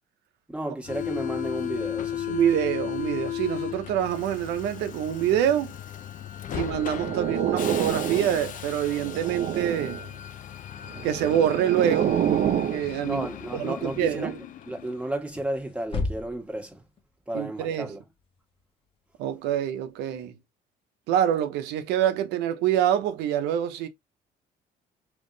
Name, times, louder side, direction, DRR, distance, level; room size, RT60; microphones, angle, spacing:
voice 1, 0.5-2.4 13.0-14.3 14.6-16.8 17.3-18.0, right 1 dB, 5° right, 1.5 m, -33 dB
Subway metro underground, 0.8-15.2, left 10 dB, 50° left, 0.5 m, -36 dB
voice 2, 2.3-5.7 6.5-10.0 11.0-12.2 12.7-13.3 13.5-14.3 17.3-17.9 19.2-20.3 21.1-23.9, right 10 dB, 90° right, 0.8 m, -26 dB
sound 1, 6.7-8.5 8.9-10.1 11.0-12.8, right 9 dB, 50° right, 0.7 m, -28 dB
sound 2, 12.4-20.2, left 3 dB, 30° left, 1.0 m, -39 dB
3.5 x 3.1 x 3.9 m
cardioid pair, 110°, 17 cm